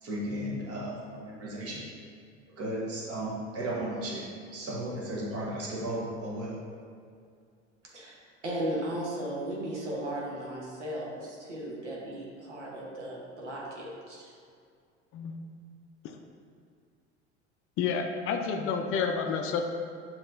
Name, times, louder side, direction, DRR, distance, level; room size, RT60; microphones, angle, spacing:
voice 1, 0.0-1.9 2.6-6.6, right 1 dB, 45° right, -4 dB, 1.4 m, -35 dB
voice 2, 7.9-14.3, right 1 dB, 90° right, -4 dB, 1.0 m, -36 dB
voice 3, 17.8-19.7, left 6 dB, 40° left, 5 dB, 0.4 m, -30 dB
7.1 x 2.9 x 2.6 m, 2.2 s
hypercardioid pair, 75°, 34 cm